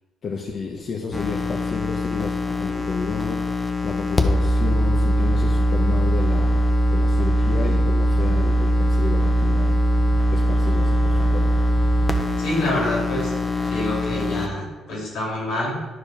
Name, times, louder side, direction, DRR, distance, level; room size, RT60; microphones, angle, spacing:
voice 1, 0.2-9.8 10.3-11.5, left 5 dB, 50° left, 1 dB, 0.9 m, -32 dB
sound 1, 1.1-14.5, equal, 25° left, 0.9 m, -21 dB
voice 2, 12.4-13.3 13.7-15.8, left 1 dB, 85° left, -2 dB, 3.1 m, -26 dB
10.5 x 4.9 x 5.1 m, 1.2 s
cardioid pair, 90°, 0 cm